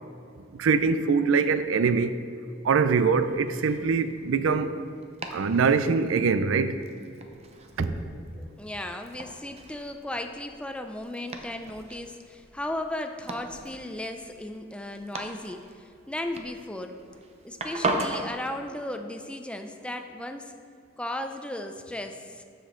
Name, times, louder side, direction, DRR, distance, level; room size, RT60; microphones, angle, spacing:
voice 1, 0.6-2.2 2.6-4.8 5.3-6.8 7.8-7.9, right 5 dB, 90° right, 0.4 m, -23 dB
Domestic sounds home sounds, 2.8-18.3, right 2 dB, 35° right, 0.7 m, -38 dB
voice 2, 8.4-17.0 17.4-20.5 21.0-22.4, left 1 dB, 5° left, 0.4 m, -36 dB
12.5 x 5.2 x 3.8 m
head